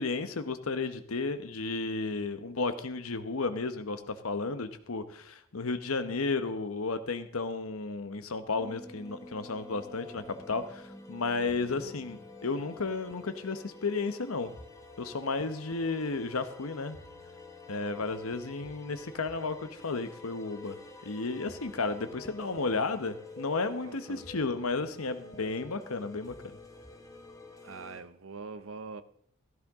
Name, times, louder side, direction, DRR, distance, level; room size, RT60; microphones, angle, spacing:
voice 1, 0.0-14.5 15.0-17.0 17.7-20.8 21.0-26.3, left 3 dB, 85° left, 1.0 m, -33 dB
sound 1, 8.6-28.0, left 2 dB, 15° left, 1.2 m, -49 dB
voice 2, 23.8-24.2 27.6-29.0, right 4 dB, 70° right, 0.7 m, -43 dB
15.5 x 14.0 x 3.6 m
head